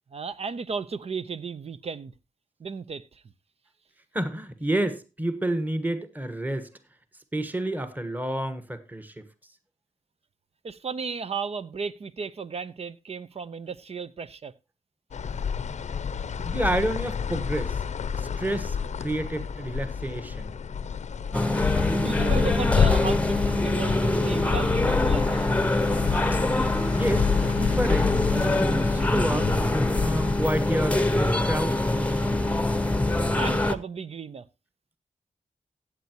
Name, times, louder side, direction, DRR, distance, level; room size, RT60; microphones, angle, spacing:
voice 1, 0.1-2.1 2.6-3.2 10.6-14.5 21.8-25.6 33.3-34.4, right 5 dB, 55° right, 0.8 m, -34 dB
voice 2, 4.1-6.7 7.3-9.2 16.4-17.8 18.1-20.5 26.9-29.5 30.0-31.8, right 1 dB, 15° right, 1.4 m, -29 dB
sound 1, 15.1-30.4, left 7 dB, 65° left, 0.7 m, -29 dB
sound 2, 21.3-33.8, left 2 dB, 10° left, 0.9 m, -24 dB
15.0 x 8.2 x 3.0 m
cardioid pair, 65°, 13 cm